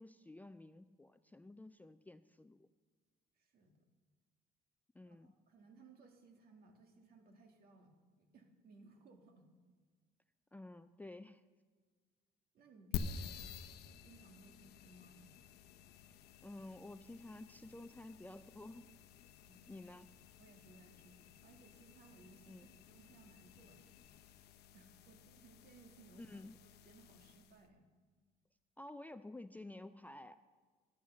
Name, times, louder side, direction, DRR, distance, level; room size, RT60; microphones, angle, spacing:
voice 1, 0.0-2.7 4.9-5.3 10.5-11.4 16.4-18.9 19.7-20.1 22.5-22.7 26.2-26.6 28.8-30.3, left 2 dB, 10° left, 11 dB, 0.3 m, -52 dB
voice 2, 3.4-3.9 5.0-9.5 12.5-13.5 14.0-15.2 19.4-19.9 20.4-23.8 24.7-27.9, right 3 dB, 65° right, 4 dB, 1.9 m, -62 dB
sound 1, 12.9-27.6, left 6 dB, 75° left, 0.7 m, -50 dB
11.0 x 8.5 x 6.9 m, 1.5 s
cardioid pair, 110°, 17 cm